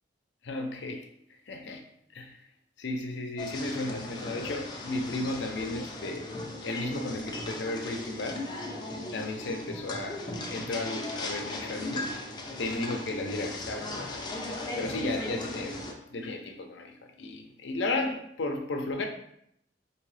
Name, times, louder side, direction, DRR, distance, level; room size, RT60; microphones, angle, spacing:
voice 1, 0.4-1.1 1.5-1.8 2.1-2.4 2.8-6.3 6.6-8.5 9.1-12.3 12.6-14.2 14.8-19.1, left 2 dB, 70° left, 4 dB, 0.6 m, -34 dB
sound 1, 3.4-15.9, left 2 dB, 25° left, 0.5 m, -38 dB
3.8 x 2.8 x 3.2 m, 0.73 s
head